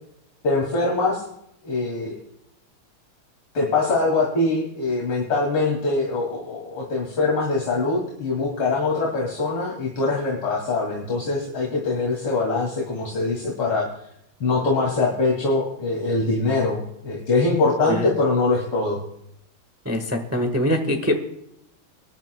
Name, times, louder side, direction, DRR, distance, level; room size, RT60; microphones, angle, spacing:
voice 1, 0.4-1.2 1.6-2.1 3.5-13.9 14.4-19.0, left 3 dB, 75° left, -4 dB, 3.3 m, -23 dB
voice 2, 19.8-21.1, equal, 10° right, 5 dB, 0.7 m, -23 dB
23.0 x 10.5 x 2.2 m, 0.77 s
omnidirectional pair, 2.4 m